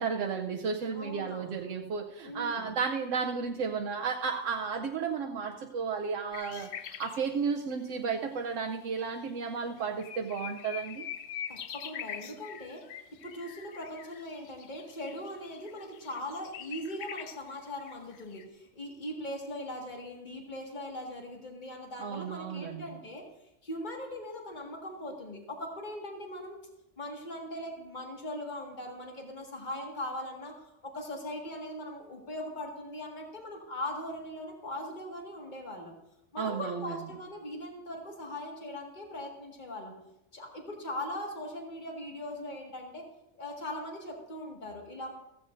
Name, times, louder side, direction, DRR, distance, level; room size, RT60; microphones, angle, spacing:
voice 1, 0.0-6.7 7.0-11.1 22.0-23.0 36.4-37.0, right 5 dB, 85° right, 1 dB, 1.1 m, -33 dB
voice 2, 0.9-1.6 2.2-2.8 11.5-12.8 13.2-23.2 23.6-26.6 27.0-30.5 30.8-35.9 36.3-39.9 40.3-43.0 43.4-45.1, left 1 dB, 40° left, 0 dB, 2.0 m, -40 dB
sound 1, 6.3-7.2 8.7-8.8 9.3-9.4 9.6-18.4, left 9 dB, 80° left, 1.0 m, -43 dB
15.0 x 15.0 x 2.6 m, 0.87 s
omnidirectional pair, 1.3 m